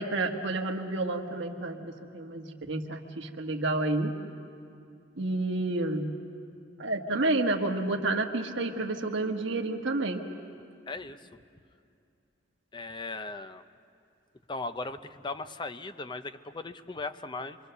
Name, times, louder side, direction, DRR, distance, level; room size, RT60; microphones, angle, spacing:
voice 1, 0.0-4.1 5.2-6.1 6.8-10.2, right 2 dB, 70° right, 3 dB, 1.3 m, -30 dB
voice 2, 10.9-11.3 12.7-13.6 14.5-17.6, left 3 dB, 25° left, 11 dB, 0.6 m, -38 dB
27.5 x 23.5 x 6.8 m, 2.5 s
head